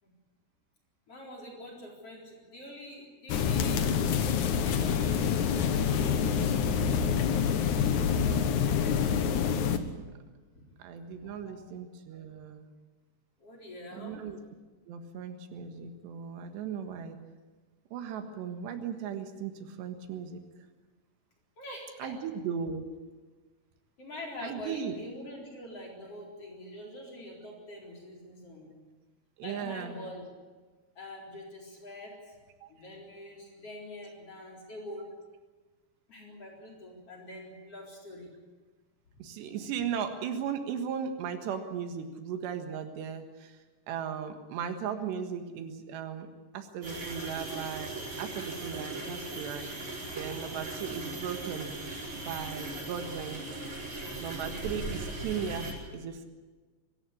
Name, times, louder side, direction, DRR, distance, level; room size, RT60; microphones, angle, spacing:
voice 1, 1.1-3.9 4.6-7.5 10.5-10.7 11.1-11.6 13.4-14.3 21.6-22.2 24.0-28.7 29.4-30.3 30.9-32.4 32.7-35.1 36.1-38.3, left 1 dB, 35° left, -1 dB, 4.8 m, -45 dB
sound 1, 3.3-9.8, left 7 dB, 65° left, 2.1 m, -27 dB
voice 2, 10.8-12.7 13.9-14.4 14.9-17.2 17.9-20.4 22.0-22.9 24.4-24.9 29.4-30.0 32.6-32.7 39.2-46.3 46.5-47.9 48.2-51.8 52.2-53.4 54.2-56.3, right 7 dB, 90° right, 7 dB, 3.7 m, -37 dB
sound 2, 46.8-55.7, right 2 dB, 45° right, 6.4 m, -38 dB
24.0 x 14.0 x 9.9 m, 1.3 s
omnidirectional pair, 4.8 m